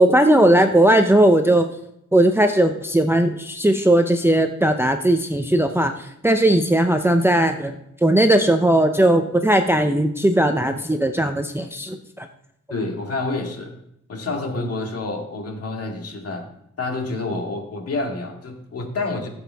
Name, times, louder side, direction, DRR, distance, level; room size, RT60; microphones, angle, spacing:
voice 1, 0.0-1.7 2.1-5.9 6.2-7.7 8.0-12.3, right 1 dB, 10° right, 5 dB, 0.6 m, -17 dB
voice 2, 12.7-13.7 14.1-16.5 16.8-19.3, left 3 dB, 55° left, 2 dB, 2.0 m, -28 dB
16.5 x 7.3 x 3.4 m, 0.77 s
wide cardioid pair, 130°, 29 cm